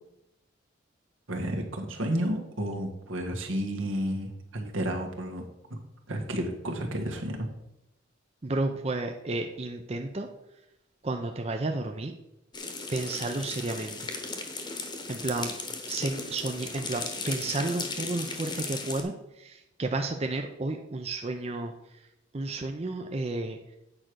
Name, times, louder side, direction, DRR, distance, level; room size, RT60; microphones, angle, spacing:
voice 1, 1.3-5.4 5.7-5.8 6.1-7.5, right 1 dB, 80° right, 2 dB, 1.7 m, -31 dB
voice 2, 8.4-10.3 11.0-12.1 12.9-14.1 15.1-15.5 15.9-19.1 19.4-21.7 22.3-23.6, right 2 dB, 30° right, 5 dB, 0.5 m, -32 dB
sound 1, 12.5-19.0, left 3 dB, 20° left, 1.0 m, -36 dB
8.9 x 5.0 x 6.1 m, 0.88 s
head